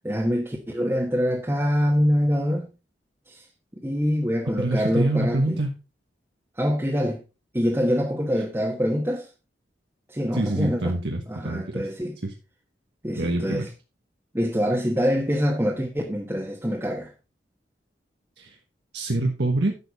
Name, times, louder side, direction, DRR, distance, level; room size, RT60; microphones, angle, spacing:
voice 1, 0.0-2.7 3.3-3.4 3.8-5.6 6.6-7.2 7.5-9.3 10.1-10.8 11.3-12.2 13.0-13.7 14.3-17.1, equal, 15° right, 1.2 m, -25 dB
voice 2, 4.6-5.7 10.3-11.9 12.2-12.3 13.2-13.7 18.4-18.6 18.9-19.7, right 2 dB, 75° right, 1.3 m, -25 dB
11.0 x 6.8 x 4.0 m
head